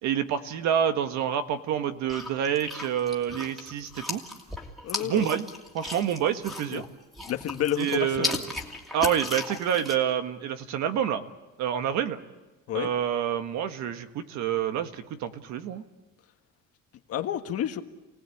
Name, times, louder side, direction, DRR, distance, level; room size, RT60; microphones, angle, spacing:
voice 1, 0.0-4.2 5.0-5.5 5.7-6.8 7.8-8.5 8.9-11.2 11.6-12.2 12.7-15.8, right 9 dB, 60° right, 8 dB, 1.6 m, -27 dB
sound 1, 2.1-6.9 7.1-10.0, left 2 dB, ahead, 2.6 m, -36 dB
voice 2, 4.8-5.3 6.7-6.8 7.3-8.3 12.7-12.9 17.1-17.8, left 11 dB, 50° left, 6 dB, 1.6 m, -30 dB
29.0 x 18.5 x 8.6 m, 1.2 s
cardioid pair, 150°, 32 cm